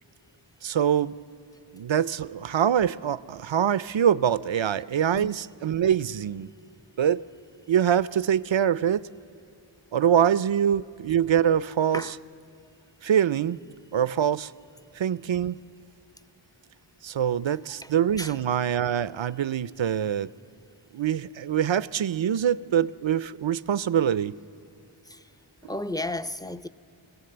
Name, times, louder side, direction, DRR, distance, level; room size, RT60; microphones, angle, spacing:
voice 1, 0.6-1.1 1.7-6.5 7.0-7.2 7.7-9.0 9.9-12.0 13.0-13.6 13.9-14.5 15.0-15.6 17.0-20.3 20.9-24.4, right 9 dB, 65° right, 0.6 m, -24 dB
voice 2, 17.8-18.4 25.1-25.2 25.6-26.7, left 1 dB, 10° left, 0.6 m, -34 dB
26.0 x 17.0 x 7.9 m
wide cardioid pair, 45°, 49 cm